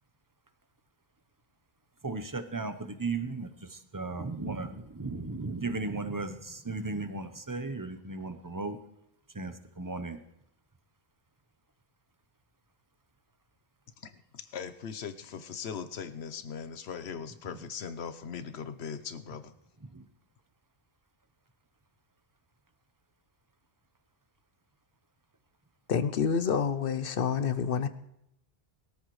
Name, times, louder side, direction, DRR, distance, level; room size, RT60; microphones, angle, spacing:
voice 1, 2.0-2.7 3.0-3.5 3.9-4.7 5.0-6.3 6.7-8.8 9.4-10.2, right 3 dB, 20° right, 0.8 m, -35 dB
voice 2, 14.0-19.5, left 7 dB, 85° left, 1.1 m, -40 dB
voice 3, 25.9-27.9, left 6 dB, 65° left, 0.9 m, -28 dB
21.5 x 13.5 x 3.2 m
omnidirectional pair, 1.1 m